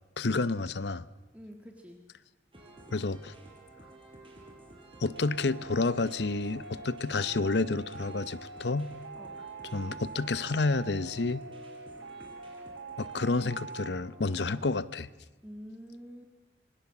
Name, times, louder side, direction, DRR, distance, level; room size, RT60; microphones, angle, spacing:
voice 1, 0.2-1.1 2.9-3.3 5.0-8.9 9.7-11.4 13.0-15.1, left 3 dB, 70° left, 17 dB, 0.8 m, -30 dB
voice 2, 1.3-2.0 9.1-9.3 15.4-16.2, equal, 10° right, 3 dB, 1.7 m, -47 dB
sound 1, 2.5-14.6, right 1 dB, 30° right, 5.1 m, -52 dB
sound 2, 5.1-14.0, right 4 dB, 80° right, 1.4 m, -44 dB
26.5 x 21.5 x 7.3 m, 1.1 s
head